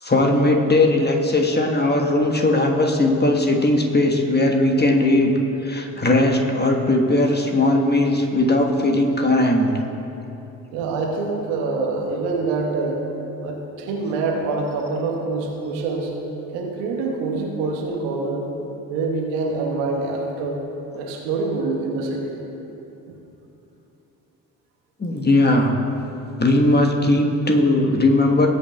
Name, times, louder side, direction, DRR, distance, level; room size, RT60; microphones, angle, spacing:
voice 1, 0.0-5.3 5.6-9.7 25.0-25.8 26.4-28.5, left 2 dB, 20° left, 1 dB, 1.3 m, -18 dB
voice 2, 10.7-13.0 13.4-16.2 16.5-18.5 18.9-20.6 21.0-22.4, right 3 dB, 75° right, 0 dB, 1.4 m, -25 dB
19.0 x 8.6 x 2.3 m, 2.9 s
figure-of-eight pair, 40°, 47 cm